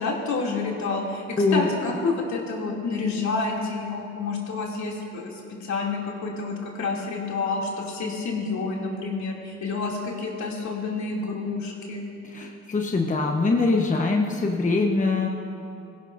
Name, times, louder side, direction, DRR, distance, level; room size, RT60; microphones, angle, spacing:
voice 1, 0.0-5.3 5.6-12.0, left 4 dB, 65° left, -2 dB, 2.8 m, -29 dB
voice 2, 1.4-1.7 12.2-15.3, left 3 dB, 25° left, 1 dB, 1.1 m, -23 dB
19.5 x 16.0 x 2.6 m, 2.5 s
cardioid pair, 90°, 30 cm